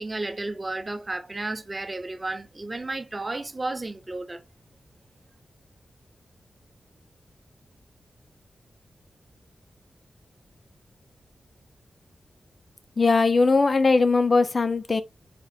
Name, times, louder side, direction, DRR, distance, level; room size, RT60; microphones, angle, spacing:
voice 1, 0.0-4.4, right 2 dB, 25° right, 0.6 m, -32 dB
voice 2, 13.0-15.0, left 3 dB, 40° left, 0.4 m, -20 dB
4.2 x 2.4 x 2.6 m
wide cardioid pair, 115°, 0 cm